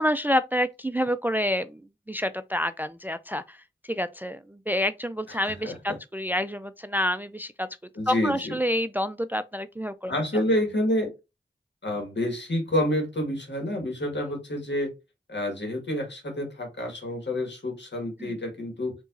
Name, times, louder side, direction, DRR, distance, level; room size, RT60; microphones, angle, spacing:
voice 1, 0.0-1.8 2.1-3.6 3.9-7.7 8.1-10.1 18.2-18.3, equal, 10° right, 0.3 m, -28 dB
voice 2, 5.3-5.8 7.9-8.5 10.1-11.1 11.8-14.9 15.3-18.9, left 1 dB, 70° left, 1.7 m, -28 dB
4.6 x 2.9 x 2.6 m
wide cardioid pair, 45°, 19 cm